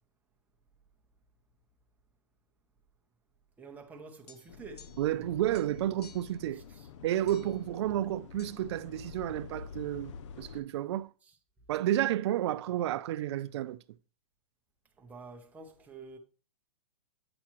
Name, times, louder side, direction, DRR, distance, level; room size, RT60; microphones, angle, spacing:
voice 1, 3.6-5.0 6.5-6.9 11.2-11.4 15.0-16.2, right 4 dB, 10° right, 0.9 m, -49 dB
sound 1, 4.3-5.2 5.5-6.4 7.3-7.7 8.4-8.6, left 7 dB, 80° left, 1.0 m, -56 dB
sound 2, 4.5-10.6, left 6 dB, 50° left, 0.6 m, -48 dB
voice 2, 5.0-6.6 7.0-11.1 11.7-13.8, right 13 dB, 45° right, 0.4 m, -31 dB
8.6 x 5.7 x 2.9 m
hypercardioid pair, 150°, 20 cm